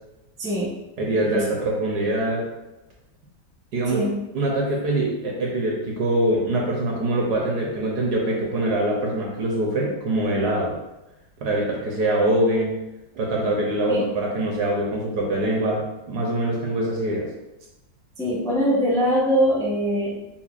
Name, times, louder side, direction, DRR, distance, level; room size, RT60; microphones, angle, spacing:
voice 1, 0.4-0.7 1.1-1.4 3.9-4.2 13.9-14.1 18.2-20.1, equal, 5° left, -6 dB, 0.4 m, -22 dB
voice 2, 1.0-2.5 3.7-4.0 4.3-10.8 11.4-12.7 13.1-17.3, right 1 dB, 70° right, -2 dB, 1.1 m, -23 dB
5.6 x 2.1 x 2.4 m, 0.97 s
omnidirectional pair, 2.1 m